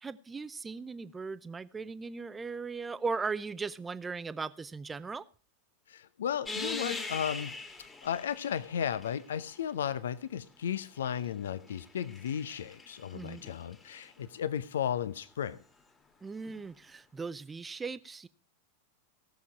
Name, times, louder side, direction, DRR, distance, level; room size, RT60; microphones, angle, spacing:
voice 1, 0.0-5.2 13.1-13.4 16.2-18.3, right 4 dB, 15° right, 0.5 m, -38 dB
voice 2, 5.9-7.5 8.0-15.6, left 9 dB, 65° left, 0.7 m, -34 dB
sound 1, 6.5-9.6 10.6-14.1 16.4-16.6, left 3 dB, 15° left, 1.8 m, -42 dB
16.5 x 7.1 x 4.7 m
figure-of-eight pair, 90°, 0 cm